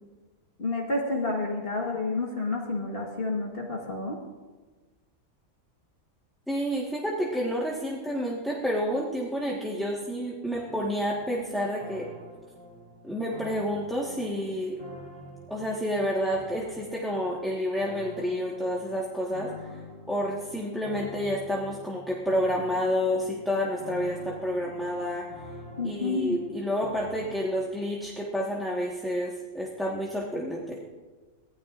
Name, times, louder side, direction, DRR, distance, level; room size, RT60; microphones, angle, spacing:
voice 1, 0.6-4.2 25.8-26.4, left 3 dB, 40° left, -2 dB, 1.5 m, -29 dB
voice 2, 6.5-12.1 13.0-14.8 15.5-19.8 20.1-25.2 25.8-30.8, equal, ahead, -4 dB, 1.2 m, -29 dB
sound 1, 10.5-27.7, equal, 55° right, 2.9 m, -46 dB
23.5 x 15.5 x 2.5 m, 1.3 s
omnidirectional pair, 1.5 m